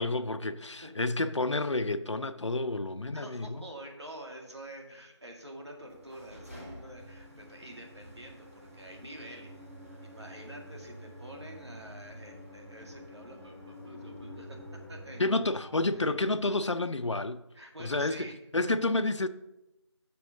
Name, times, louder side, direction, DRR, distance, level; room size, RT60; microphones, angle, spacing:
voice 1, 0.0-3.7 15.2-17.4 17.8-19.3, left 2 dB, 70° left, 0.5 m, -30 dB
voice 2, 3.1-9.5 10.0-14.6 14.9-15.2 15.9-16.0 17.5-18.4, right 1 dB, 65° right, 2.0 m, -47 dB
sound 1, 5.7-16.1, equal, 30° right, 1.5 m, -48 dB
6.9 x 4.5 x 6.4 m
figure-of-eight pair, 180°, 15 cm